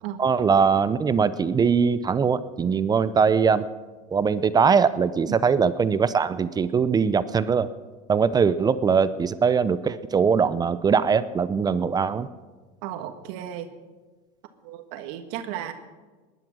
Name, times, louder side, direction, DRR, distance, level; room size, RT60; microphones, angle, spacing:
voice 1, 0.2-3.7 4.1-7.7 8.1-12.3, right 6 dB, 20° right, 14 dB, 0.6 m, -21 dB
voice 2, 12.8-13.7 14.6-15.7, right 11 dB, 65° right, 7 dB, 1.5 m, -34 dB
19.0 x 11.0 x 6.2 m, 1.3 s
supercardioid pair, 125°, 20 cm